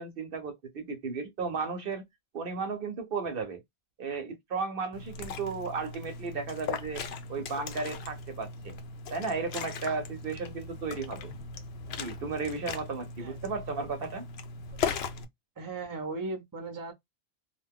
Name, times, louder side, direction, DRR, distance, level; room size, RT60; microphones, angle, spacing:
voice 1, 0.0-2.0 2.3-3.6 4.0-8.8 9.1-11.3 12.0-14.3, right 4 dB, 65° right, 0.9 m, -34 dB
Liquid, 4.9-15.2, left 5 dB, 75° left, 0.8 m, -38 dB
voice 2, 15.6-16.9, right 3 dB, 25° right, 0.7 m, -37 dB
2.6 x 2.2 x 3.4 m
omnidirectional pair, 1.1 m